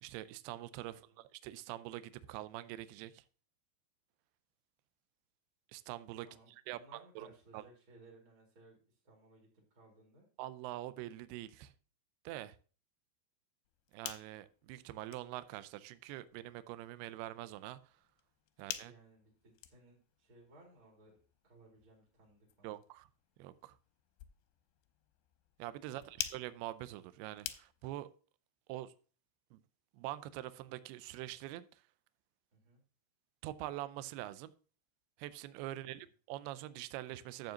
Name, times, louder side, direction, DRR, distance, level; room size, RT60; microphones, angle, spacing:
voice 1, 0.0-3.2 5.7-6.3 6.7-7.6 10.4-11.7 12.3-12.6 13.9-17.8 18.6-18.9 22.6-23.1 23.4-23.7 25.6-28.1 28.7-28.9 29.5-29.6 29.9-31.8 33.4-34.5 35.2-37.5, right 15 dB, 85° right, 2.3 m, -44 dB
voice 2, 0.9-1.2 6.2-10.3 18.8-21.2 21.4-22.8 25.8-26.2 32.5-32.8 35.8-35.9, right 2 dB, 35° right, 2.7 m, -62 dB
sound 1, 13.7-28.1, left 13 dB, 90° left, 2.9 m, -50 dB
12.0 x 7.7 x 2.9 m
omnidirectional pair, 5.0 m